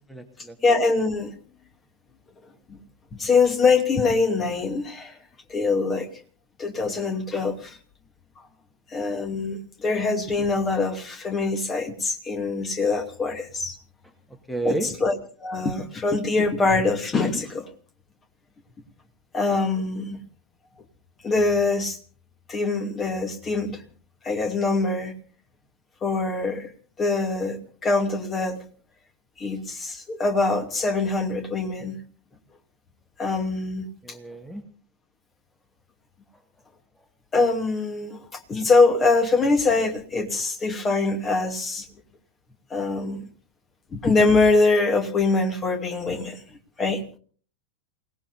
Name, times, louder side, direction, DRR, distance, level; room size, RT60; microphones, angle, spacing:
voice 1, 0.1-0.6 14.5-14.9 34.0-34.6, right 2 dB, ahead, 6 dB, 1.9 m, -30 dB
voice 2, 0.6-1.4 2.7-2.8 3.1-5.2 5.5-6.1 6.6-7.8 8.9-13.8 14.6-15.1 15.4-17.7 19.3-20.2 21.2-22.0 22.5-23.8 24.2-25.2 26.0-26.7 27.0-28.6 29.4-32.0 33.2-33.9 37.3-41.9 42.7-43.3 43.9-47.0, left 3 dB, 20° left, 6 dB, 2.5 m, -23 dB
28.5 x 18.5 x 2.6 m, 0.43 s
figure-of-eight pair, 90°, 0 cm